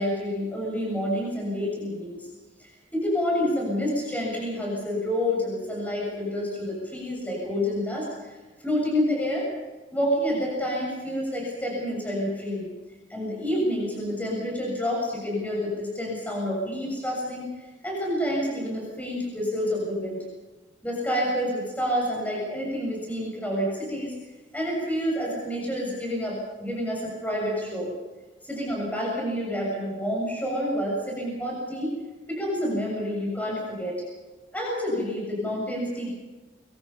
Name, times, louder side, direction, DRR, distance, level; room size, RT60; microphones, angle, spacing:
voice 1, 0.0-2.3 2.6-9.5 9.9-12.7 13.1-20.2 20.8-24.1 24.5-27.9 28.4-32.0 32.3-34.0 34.5-36.1, equal, 10° left, -3 dB, 7.0 m, -28 dB
24.0 x 24.0 x 5.8 m, 1.2 s
head